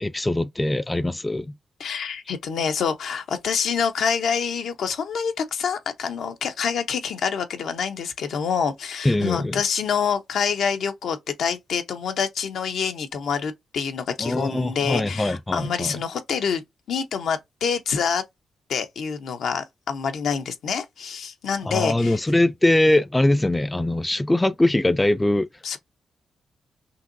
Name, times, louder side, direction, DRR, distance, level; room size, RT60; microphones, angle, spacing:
voice 1, 0.0-1.5 9.0-9.6 14.2-16.0 21.6-25.5, left 1 dB, 15° left, 0.4 m, -22 dB
voice 2, 1.8-18.2 18.7-22.2 25.6-25.8, left 6 dB, 75° left, 0.9 m, -26 dB
5.7 x 2.9 x 2.6 m
cardioid pair, 60°, 0 cm